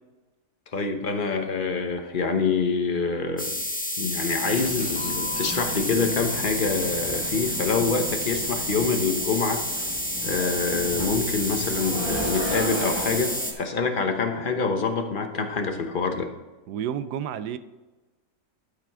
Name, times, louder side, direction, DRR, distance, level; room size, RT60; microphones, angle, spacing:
voice 1, 0.7-3.5 4.0-9.8 10.2-13.3 13.6-16.3, left 4 dB, 40° left, 0.9 m, -26 dB
sound 1, 3.4-13.5, equal, 5° left, 0.7 m, -30 dB
sound 2, 4.3-13.6, equal, 15° right, 1.3 m, -35 dB
voice 2, 16.7-17.6, right 9 dB, 75° right, 1.1 m, -30 dB
12.0 x 5.9 x 3.6 m
omnidirectional pair, 1.8 m